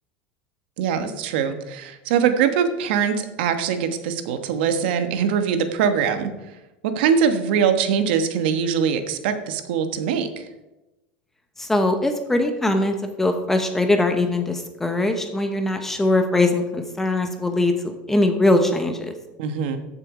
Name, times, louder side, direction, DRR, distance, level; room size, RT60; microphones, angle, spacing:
voice 1, 0.8-6.3 6.8-10.5 19.4-19.8, right 7 dB, 65° right, 8 dB, 1.3 m, -22 dB
voice 2, 11.6-19.1, left 2 dB, 5° left, 6 dB, 0.8 m, -21 dB
14.5 x 7.0 x 4.9 m, 1.0 s
supercardioid pair, 175°, 6 cm